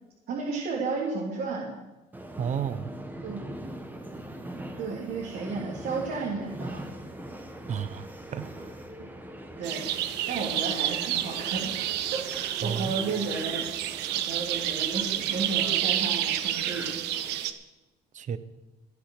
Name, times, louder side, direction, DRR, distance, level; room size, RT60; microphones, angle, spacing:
voice 1, 0.3-1.7 3.2-3.4 4.8-6.8 9.6-9.9 10.3-13.6 14.1-16.9, right 4 dB, 65° right, -3 dB, 3.0 m, -33 dB
Subway metro underground, 2.1-17.4, right 1 dB, 10° right, 1.6 m, -42 dB
voice 2, 2.4-2.9 7.7-8.7 12.6-12.9 18.1-18.4, right 7 dB, 45° right, 13 dB, 0.9 m, -32 dB
sound 1, 9.6-17.5, right 12 dB, 90° right, 1.0 m, -29 dB
15.0 x 9.7 x 6.4 m, 1.0 s
cardioid pair, 110°, 17 cm